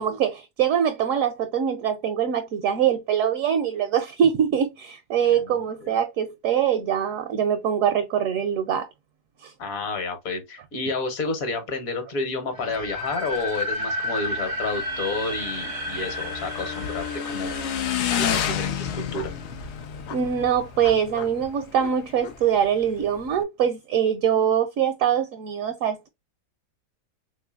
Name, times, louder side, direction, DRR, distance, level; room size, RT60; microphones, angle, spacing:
voice 1, 0.0-8.9 9.4-9.5 20.1-26.1, right 8 dB, 70° right, 0.8 m, -23 dB
voice 2, 5.4-5.9 9.6-17.6 18.1-19.3, left 3 dB, 60° left, 1.3 m, -30 dB
sound 1, 12.5-19.4, left 1 dB, 45° right, 0.4 m, -32 dB
Motorcycle / Engine, 14.2-23.4, left 8 dB, 90° left, 0.6 m, -31 dB
3.6 x 3.0 x 2.3 m
omnidirectional pair, 1.7 m